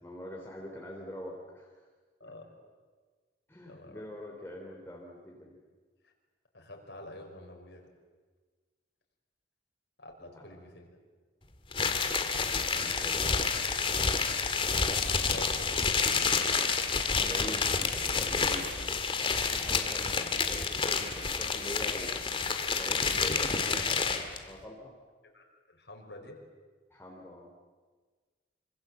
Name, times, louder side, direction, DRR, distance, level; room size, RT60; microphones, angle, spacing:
voice 1, 0.0-1.7 2.2-2.3 3.5-5.5 10.2-10.5 12.6-13.5 17.1-22.3 22.7-24.9 26.9-27.5, left 1 dB, 15° left, -1 dB, 3.3 m, -44 dB
voice 2, 2.2-2.5 3.7-4.0 6.0-6.1 6.5-7.9 10.0-10.9 15.3-15.8 25.3-26.4, left 1 dB, 75° left, 1 dB, 5.5 m, -47 dB
sound 1, 11.7-24.4, left 5 dB, 30° left, 2.0 m, -29 dB
27.0 x 25.5 x 7.8 m, 1.4 s
head